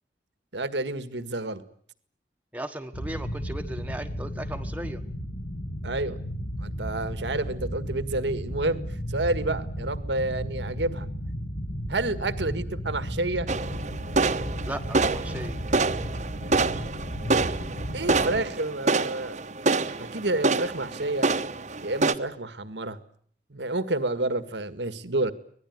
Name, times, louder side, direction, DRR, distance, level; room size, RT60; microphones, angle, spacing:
voice 1, 0.5-1.6 5.8-6.2 6.6-8.8 9.1-11.1 11.9-13.5 17.9-19.4 20.0-21.3 21.8-23.0 23.5-25.3, right 2 dB, 85° right, 12 dB, 1.8 m, -29 dB
voice 2, 2.5-5.0 14.6-15.6, right 1 dB, 10° right, 5 dB, 1.2 m, -36 dB
sound 1, 2.9-18.4, equal, 70° left, 4.7 m, -34 dB
sound 2, 13.5-22.1, right 3 dB, 40° right, 1.1 m, -27 dB
25.5 x 19.0 x 9.5 m, 0.62 s
head